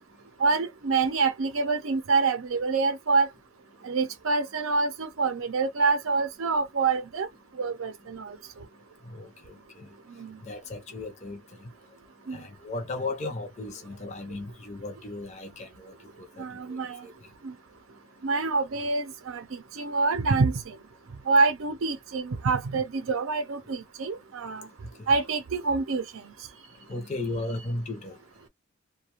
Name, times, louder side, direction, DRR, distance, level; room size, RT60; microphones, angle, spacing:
voice 1, 0.4-3.3 3.8-7.3 7.6-8.4 10.2-10.4 12.3-12.4 16.4-17.0 17.4-17.5 18.2-19.4 19.8-20.7 21.3-24.7 25.1-26.0, right 4 dB, 85° right, 0.6 m, -26 dB
voice 2, 10.4-11.7 12.3-15.9 16.4-16.8 26.9-28.2, left 2 dB, 35° left, 0.6 m, -35 dB
2.4 x 2.2 x 3.0 m
head